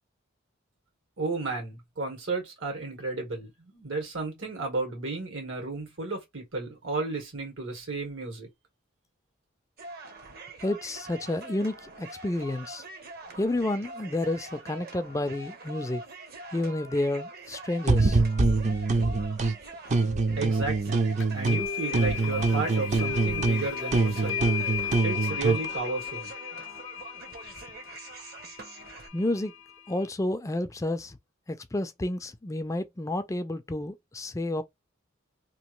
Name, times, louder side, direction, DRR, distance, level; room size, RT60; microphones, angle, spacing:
voice 1, 1.2-8.5 20.4-24.4 25.0-26.3, right 3 dB, 75° right, 1.8 m, -33 dB
sound 1, 9.8-29.1, right 2 dB, 50° right, 0.9 m, -44 dB
voice 2, 10.6-12.8 13.4-16.0 16.5-18.2 29.1-29.5 29.9-31.2 31.5-34.6, left 1 dB, 15° left, 0.4 m, -30 dB
sound 2, 17.9-19.5 19.9-21.7 21.9-25.6, right 3 dB, 35° right, 0.5 m, -25 dB
sound 3, 21.2-30.1, left 7 dB, 75° left, 0.5 m, -35 dB
3.0 x 2.6 x 3.0 m
head